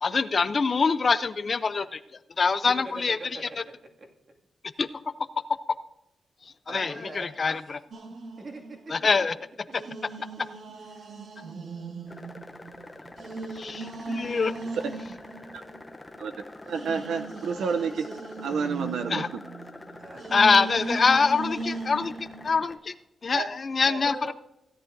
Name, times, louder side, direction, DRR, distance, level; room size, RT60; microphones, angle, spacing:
voice 1, 0.0-3.2 4.8-4.9 5.5-5.6 6.4-7.8 8.9-9.3 13.5-14.5 19.1-19.3 20.3-22.9 23.2-24.3, left 4 dB, 40° left, 14 dB, 0.5 m, -25 dB
voice 2, 2.8-3.4 6.7-7.6 8.4-9.0 10.9-11.1 20.0-20.3 24.0-24.3, right 2 dB, 45° right, 1 dB, 2.2 m, -41 dB
sound 1, 7.9-9.2 9.7-16.2 16.7-22.6, right 3 dB, 70° right, 1.5 m, -38 dB
sound 2, 12.1-22.8, left 2 dB, 15° left, 0.7 m, -46 dB
voice 3, 16.6-18.1 18.4-19.2 23.3-23.5 23.9-24.0, right 5 dB, 85° right, 8 dB, 0.6 m, -29 dB
16.5 x 9.9 x 2.6 m, 0.90 s
wide cardioid pair, 115°, 0 cm